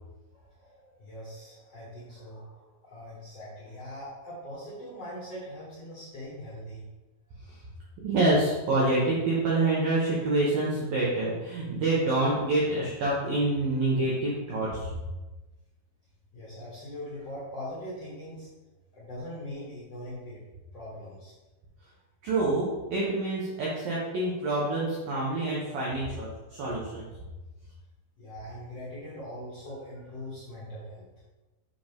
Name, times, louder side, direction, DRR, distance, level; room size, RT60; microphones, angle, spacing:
voice 1, 0.3-6.8 13.9-14.0 16.3-18.5 18.9-20.4 20.7-21.3 28.2-31.1, equal, 50° left, -9 dB, 1.8 m, -41 dB
voice 2, 8.0-14.9 22.2-27.1, right 2 dB, 75° right, -5 dB, 2.2 m, -27 dB
7.7 x 5.2 x 3.6 m, 1.1 s
omnidirectional pair, 5.8 m